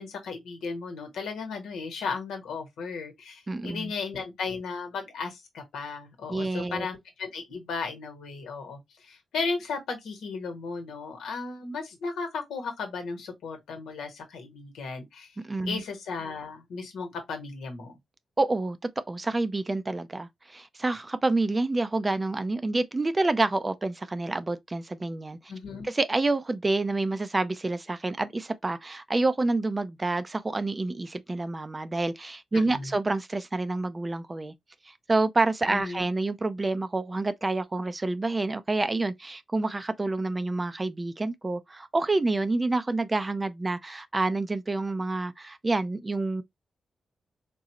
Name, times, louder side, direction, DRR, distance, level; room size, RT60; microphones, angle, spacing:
voice 1, 0.0-15.4 15.7-18.0 25.5-25.9 32.5-32.9 35.7-36.1, left 4 dB, 90° left, 0.9 m, -35 dB
voice 2, 3.5-3.9 6.3-6.9 15.4-15.8 18.4-18.8 19.1-25.4 25.9-34.5 35.1-46.4, right 2 dB, 25° right, 0.4 m, -28 dB
3.7 x 2.0 x 2.7 m
cardioid pair, 75°, 0 cm